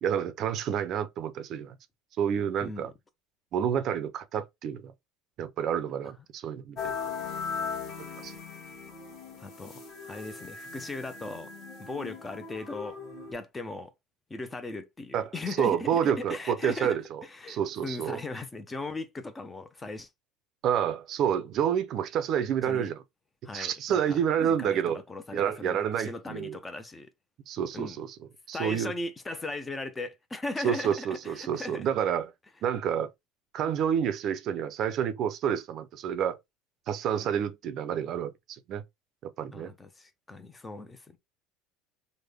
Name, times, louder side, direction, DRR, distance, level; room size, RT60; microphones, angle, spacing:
voice 1, 0.0-1.8 2.2-2.9 3.5-4.9 5.4-7.0 8.2-8.3 15.1-17.2 17.5-18.2 20.6-23.0 23.5-25.0 25.3-26.6 27.5-28.2 28.5-28.9 30.6-32.3 32.6-33.1 33.5-36.4 36.9-38.8 39.2-39.7, right 8 dB, 45° right, 0.5 m, -29 dB
voice 2, 2.6-2.9 9.4-9.7 10.1-11.5 11.8-13.0 13.3-13.9 14.3-20.1 22.6-22.9 23.4-27.1 27.7-28.0 28.5-31.9 37.1-37.3 39.5-41.2, left 2 dB, 15° left, 0.4 m, -38 dB
sound 1, 6.8-13.3, left 5 dB, 35° left, 1.3 m, -39 dB
3.4 x 2.1 x 3.3 m
cardioid pair, 140°, 0 cm